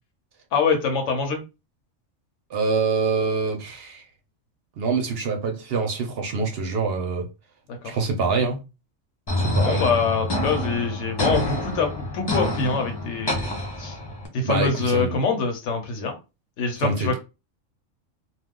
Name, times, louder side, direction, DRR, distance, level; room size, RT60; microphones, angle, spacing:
voice 1, 0.5-1.4 7.7-8.0 9.6-13.5 13.8-14.0 14.3-16.1 16.6-17.2, left 4 dB, 70° left, 1.1 m, -25 dB
voice 2, 2.5-4.0 4.8-7.3 7.8-8.6 9.4-9.9 14.4-15.2 16.8-17.2, right 4 dB, 60° right, 0.7 m, -25 dB
sound 1, 9.3-14.3, left 1 dB, 25° left, 0.6 m, -27 dB
2.4 x 2.3 x 3.6 m
omnidirectional pair, 1.3 m